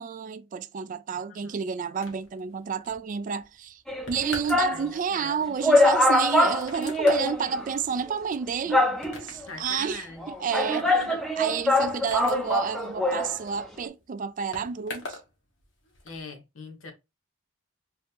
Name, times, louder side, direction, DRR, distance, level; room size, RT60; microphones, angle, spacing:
voice 1, 0.0-8.9 9.2-10.9 11.4-15.2, right 6 dB, 40° right, 0.3 m, -30 dB
voice 2, 1.1-1.6 4.7-5.5 9.5-10.2 10.7-11.2 16.0-16.9, left 2 dB, 80° left, 1.2 m, -41 dB
sound 1, 2.0-15.3 15.6-16.2, left 2 dB, 60° left, 1.5 m, -44 dB
sound 2, 3.9-4.8 5.3-5.4 5.6-7.7 8.0-8.1 8.7-9.4 10.2-13.4 13.6-13.7, left 1 dB, ahead, 0.6 m, -23 dB
4.0 x 2.8 x 3.4 m
head